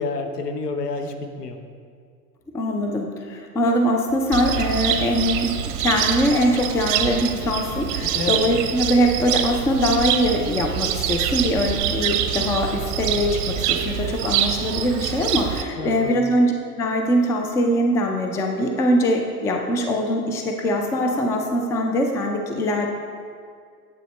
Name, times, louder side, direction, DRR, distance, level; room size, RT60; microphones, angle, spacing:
voice 1, 0.0-1.6 8.0-8.5 15.8-16.2, left 3 dB, 85° left, 5 dB, 1.0 m, -29 dB
voice 2, 2.5-22.9, equal, 5° left, 3 dB, 0.3 m, -22 dB
Cricket, 4.3-15.6, right 10 dB, 50° right, 0.7 m, -25 dB
9.0 x 8.0 x 3.2 m, 2.1 s
hypercardioid pair, 95°, 46 cm